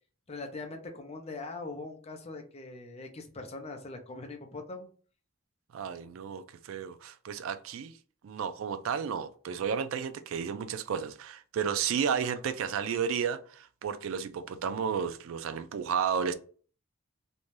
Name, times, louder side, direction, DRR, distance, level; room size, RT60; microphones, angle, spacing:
voice 1, 0.3-4.9, left 3 dB, 30° left, 0.5 m, -41 dB
voice 2, 5.7-7.9 8.2-16.3, right 7 dB, 70° right, 0.3 m, -32 dB
2.6 x 2.2 x 3.1 m
head